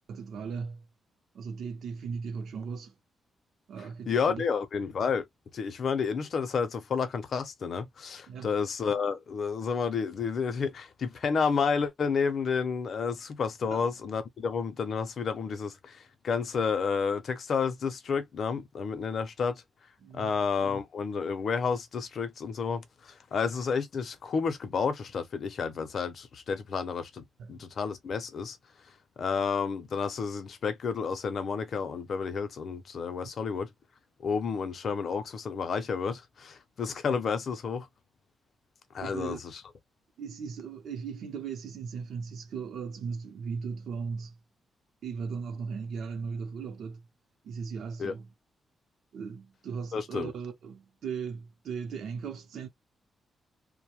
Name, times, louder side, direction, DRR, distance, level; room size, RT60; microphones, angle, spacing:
voice 1, 0.1-0.8 1.3-2.9 3.7-4.4 8.3-8.5 13.7-13.9 20.0-20.4 27.4-27.6 39.0-39.4 40.2-44.4 45.0-47.1 47.4-48.3 49.1-52.7, right 5 dB, 70° right, 0.6 m, -37 dB
voice 2, 4.1-5.2 5.5-19.5 20.1-28.6 29.2-33.7 34.2-37.9 38.9-39.6 48.0-48.1 49.9-50.3, left 5 dB, 50° left, 0.6 m, -30 dB
2.5 x 2.1 x 2.9 m
wide cardioid pair, 165°, 0 cm